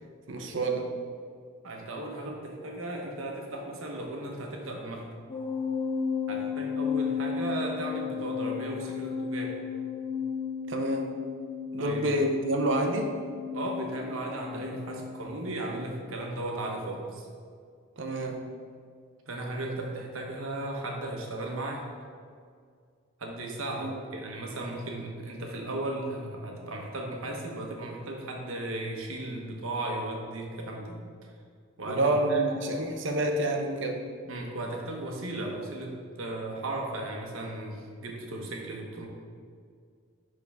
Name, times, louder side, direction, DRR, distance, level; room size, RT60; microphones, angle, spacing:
voice 1, 0.3-0.9 10.7-11.2 11.7-13.1 18.0-18.4 23.8-24.0 31.9-34.1, right 1 dB, 60° right, 3 dB, 0.7 m, -28 dB
voice 2, 1.6-5.1 6.3-9.6 11.8-12.1 13.5-17.3 19.3-21.8 23.2-31.0 31.8-32.4 34.2-39.1, right 1 dB, 80° right, 1 dB, 1.1 m, -36 dB
sound 1, 5.3-15.0, left 6 dB, 25° left, 1.6 m, -34 dB
10.5 x 3.8 x 3.5 m, 2.1 s
head